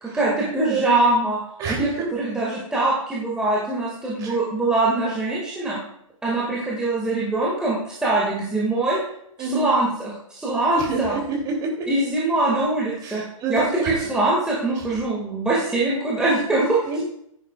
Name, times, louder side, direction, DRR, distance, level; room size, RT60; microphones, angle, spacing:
voice 1, 0.0-1.4 1.7-5.8 6.2-9.0 9.5-11.2 11.9-13.2 13.5-16.8, right 2 dB, 5° right, -6 dB, 1.9 m, -23 dB
voice 2, 0.5-1.0 1.6-2.1 4.2-4.4 9.4-9.7 10.7-11.9 13.0-14.1 14.7-15.0 16.9-17.0, right 3 dB, 20° right, -1 dB, 2.7 m, -28 dB
15.5 x 10.0 x 2.3 m, 0.71 s
figure-of-eight pair, 120°, 18 cm